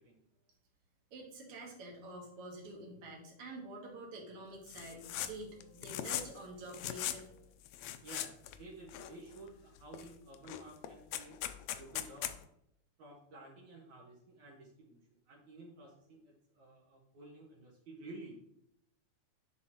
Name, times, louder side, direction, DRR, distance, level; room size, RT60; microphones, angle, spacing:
voice 1, 1.1-7.4, right 2 dB, 50° right, -1 dB, 2.4 m, -48 dB
sound 1, 4.7-5.3 5.6-6.4 6.7-7.2 7.7-8.6 8.9-9.5 9.9-10.1 10.3-12.4, left 12 dB, 80° left, 1.6 m, -39 dB
voice 2, 8.0-11.3 11.7-12.4 13.0-15.0 15.3-18.4, right 2 dB, 75° right, -3 dB, 2.5 m, -52 dB
10.0 x 4.8 x 2.9 m, 0.74 s
omnidirectional pair, 3.5 m